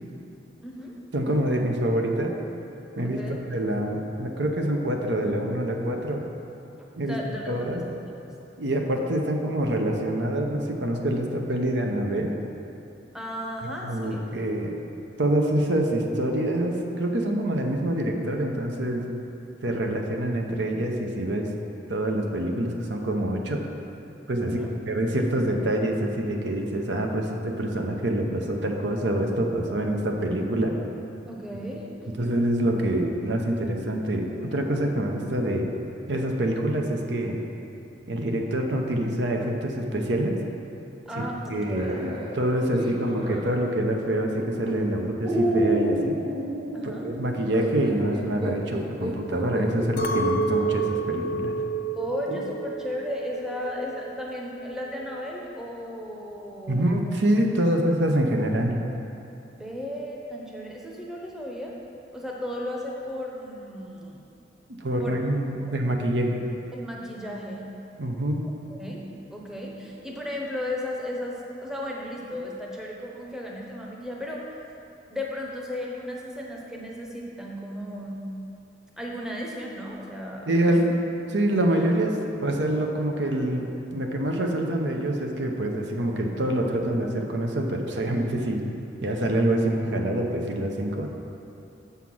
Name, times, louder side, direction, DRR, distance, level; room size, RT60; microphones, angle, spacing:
voice 1, 0.6-1.0 3.0-3.4 7.1-7.8 8.2-8.3 13.1-14.2 24.4-24.8 31.3-31.9 41.1-42.0 46.7-47.1 52.0-57.0 59.6-61.7 62.1-64.3 65.0-65.2 65.6-65.7 66.7-67.6 68.7-69.0 69.3-74.6 75.1-78.3 79.0-80.8, left 1 dB, 5° right, -2 dB, 0.8 m, -35 dB
voice 2, 1.1-2.3 3.0-6.2 7.0-7.2 7.5-7.8 8.6-12.3 13.6-14.7 15.2-19.1 19.6-21.5 21.9-23.7 24.3-24.6 24.9-30.7 32.1-35.7 36.1-37.4 38.1-40.4 41.2-46.2 46.8-51.5 56.7-58.8 64.7-66.4 68.0-68.4 80.5-81.0 81.3-83.6 83.9-88.6 89.0-91.1, right 1 dB, 75° right, 2 dB, 0.8 m, -26 dB
sound 1, 41.6-43.6 44.4-44.7 45.2-49.9 50.6-50.7 52.3-52.5, right 1 dB, 30° right, 0.9 m, -30 dB
Chink clink, 50.0-54.4 54.7-55.3, right 3 dB, 50° left, 0.6 m, -30 dB
7.1 x 5.7 x 6.1 m, 2.7 s
head